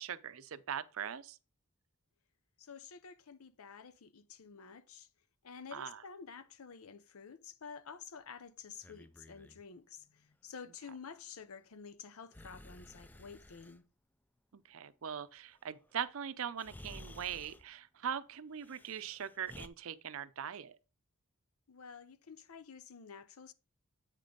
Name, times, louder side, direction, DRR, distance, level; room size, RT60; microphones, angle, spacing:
voice 1, 0.0-1.4 5.7-6.0 14.5-20.8, right 8 dB, 65° right, 0.5 m, -41 dB
voice 2, 2.6-5.1 5.4-13.8 21.7-23.5, left 6 dB, 75° left, 0.7 m, -50 dB
Breathing, 8.7-9.6 12.3-13.8 16.0-16.1 16.6-17.7 18.6-19.7, left 1 dB, 10° left, 0.4 m, -53 dB
8.2 x 5.1 x 3.9 m
head